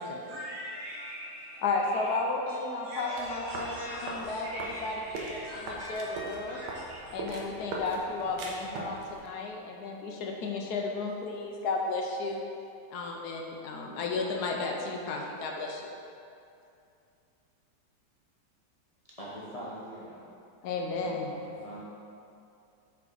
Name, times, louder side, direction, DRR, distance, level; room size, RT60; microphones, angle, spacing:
voice 1, 0.2-2.2 2.8-7.3, equal, 55° right, -6 dB, 0.8 m, -42 dB
voice 2, 1.6-6.6 7.1-12.4 12.9-15.9 20.6-21.3, left 3 dB, 75° left, 1 dB, 1.1 m, -33 dB
sound 1, 3.2-9.2, right 2 dB, 80° right, 1.4 m, -40 dB
voice 3, 19.2-20.3 20.9-21.4 21.6-21.8, right 1 dB, 35° left, -8 dB, 0.6 m, -43 dB
5.7 x 4.6 x 3.9 m, 2.6 s
omnidirectional pair, 1.8 m